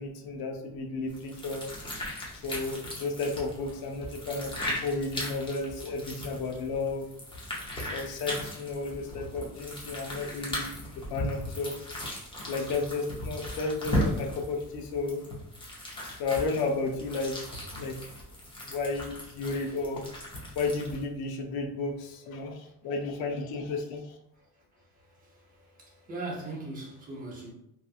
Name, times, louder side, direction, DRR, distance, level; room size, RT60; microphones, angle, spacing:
voice 1, 0.0-1.7 2.4-7.1 7.9-10.7 11.0-11.7 12.4-15.2 16.2-17.4 17.7-18.0 18.6-20.0 20.6-24.2, left 3 dB, 65° left, 3 dB, 0.5 m, -33 dB
sound 1, 1.1-21.0, left 1 dB, 15° left, 0.4 m, -37 dB
voice 2, 25.1-27.5, right 2 dB, 20° right, -3 dB, 0.7 m, -40 dB
2.8 x 2.4 x 2.3 m, 0.79 s
cardioid pair, 170°, 39 cm